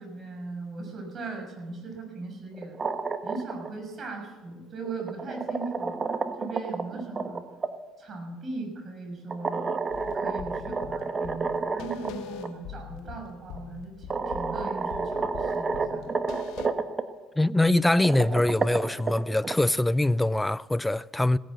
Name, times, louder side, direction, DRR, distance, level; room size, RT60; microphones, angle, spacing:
voice 1, 0.0-2.8 3.2-6.0 6.4-7.4 8.0-9.7 10.1-16.2, right 3 dB, 45° right, 6.5 m, -38 dB
sound 1, 2.5-3.7 4.9-7.7 9.3-12.1 12.4-12.5 13.6-13.7 14.1-17.0 17.9-19.5, right 4 dB, 30° right, 1.3 m, -30 dB
sound 2, 9.9-16.7, left 9 dB, 75° left, 1.1 m, -43 dB
voice 2, 17.4-21.4, left 1 dB, 10° left, 0.5 m, -23 dB
17.5 x 10.5 x 7.7 m
supercardioid pair, 85°, 0 cm